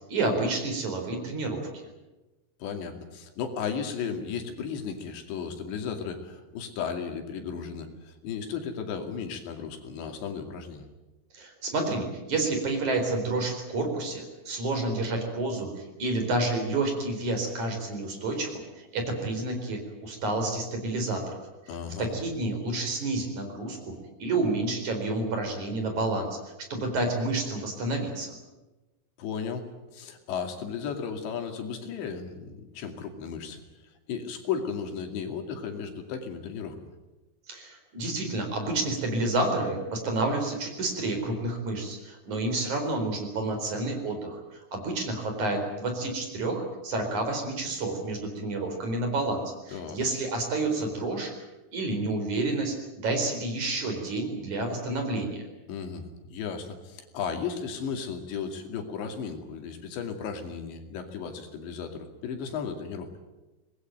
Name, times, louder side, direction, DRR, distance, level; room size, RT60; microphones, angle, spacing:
voice 1, 0.1-1.7 11.3-21.4 22.0-26.4 26.7-28.4 37.5-44.4 44.7-51.3 51.7-55.4, right 2 dB, 45° right, 4 dB, 5.5 m, -29 dB
voice 2, 2.6-10.9 21.7-22.1 29.2-29.7 29.9-33.6 34.1-36.9 49.7-50.0 55.7-63.1, left 6 dB, 85° left, 5 dB, 4.7 m, -35 dB
24.5 x 20.0 x 9.1 m, 1.1 s
omnidirectional pair, 5.0 m